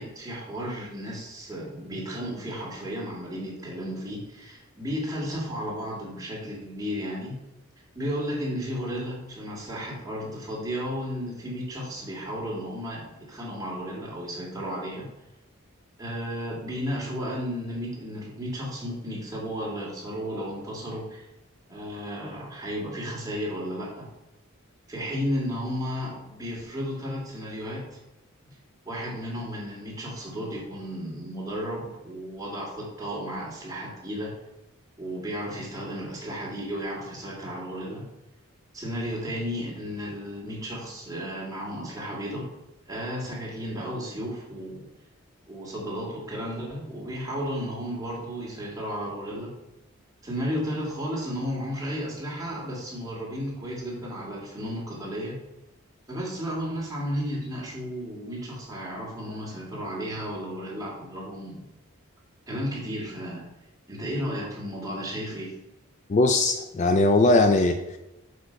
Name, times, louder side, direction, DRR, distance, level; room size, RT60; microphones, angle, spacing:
voice 1, 0.0-7.4 7.9-15.1 16.0-21.3 21.7-24.1 24.9-28.0 28.5-28.6 28.9-34.4 35.0-38.1 38.7-42.5 42.9-44.8 45.5-49.5 50.2-55.4 56.1-61.6 62.5-63.5 63.9-65.5, equal, 15° right, -4 dB, 1.9 m, -33 dB
voice 2, 66.1-68.0, left 2 dB, 35° left, 7 dB, 0.3 m, -20 dB
6.7 x 5.2 x 4.4 m, 0.98 s
head